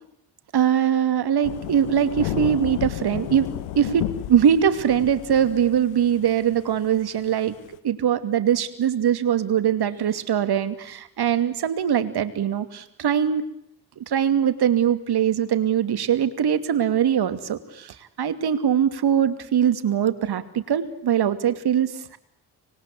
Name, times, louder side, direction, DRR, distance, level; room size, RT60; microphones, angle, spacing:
voice 1, 0.5-3.5 3.8-7.5 7.8-13.4 14.0-22.2, right 9 dB, 60° right, 11 dB, 2.6 m, -22 dB
Thunder / Rain, 1.4-7.8, left 14 dB, 85° left, 1.3 m, -32 dB
25.0 x 21.5 x 9.5 m, 0.75 s
supercardioid pair, 55°, 45 cm